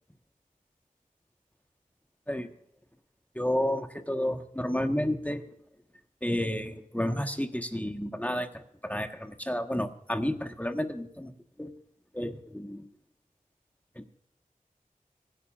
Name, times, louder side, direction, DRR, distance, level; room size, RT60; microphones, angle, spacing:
voice 1, 3.3-5.4 6.2-8.5 8.8-11.3 11.6-11.7 12.1-12.8 14.0-14.1, left 1 dB, 10° left, 6 dB, 1.3 m, -31 dB
24.0 x 11.0 x 2.5 m, 0.74 s
wide cardioid pair, 60°, 15 cm